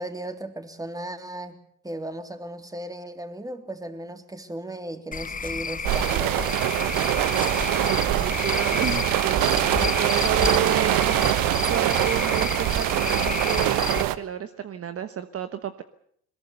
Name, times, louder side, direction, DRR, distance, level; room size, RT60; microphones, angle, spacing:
voice 1, 0.0-1.6 1.8-7.2, right 1 dB, 10° right, 7 dB, 3.3 m, -36 dB
Cricket / Frog, 5.1-14.0, left 5 dB, 20° left, 1.1 m, -30 dB
sound 1, 5.8-14.2, right 15 dB, 65° right, 1.3 m, -24 dB
voice 2, 7.8-11.3 11.7-15.8, right 9 dB, 40° right, 10 dB, 1.3 m, -31 dB
22.0 x 21.5 x 6.9 m, 0.66 s
hypercardioid pair, 65°, 36 cm